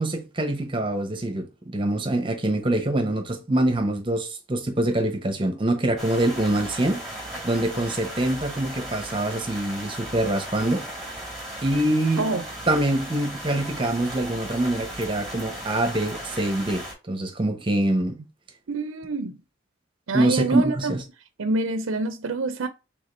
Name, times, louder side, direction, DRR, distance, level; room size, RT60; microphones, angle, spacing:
voice 1, 0.0-10.8 11.6-12.3 12.7-18.2 20.1-21.0, right 1 dB, 25° right, 0.9 m, -25 dB
sound 1, 6.0-16.9, right 1 dB, ahead, 1.7 m, -36 dB
voice 2, 12.2-12.5 18.7-19.4 20.1-20.9 21.4-22.7, right 3 dB, 75° right, 0.5 m, -26 dB
5.0 x 3.5 x 2.6 m
head